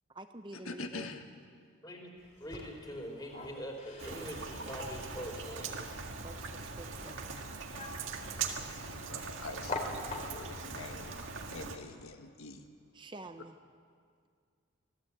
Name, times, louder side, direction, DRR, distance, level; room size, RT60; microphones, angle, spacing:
voice 1, 0.1-1.1 6.2-7.3 12.9-13.6, right 2 dB, 20° right, 7 dB, 0.7 m, -48 dB
voice 2, 0.7-1.2 8.7-12.7, left 3 dB, 85° left, 5 dB, 1.7 m, -45 dB
voice 3, 1.8-2.1 2.4-6.0, equal, 20° left, 2 dB, 3.6 m, -43 dB
sound 1, 2.2-10.7, left 2 dB, 35° left, 2.5 m, -46 dB
Rain, 4.0-11.8, right 5 dB, 65° right, 1.8 m, -41 dB
25.0 x 16.0 x 8.4 m, 2.1 s
head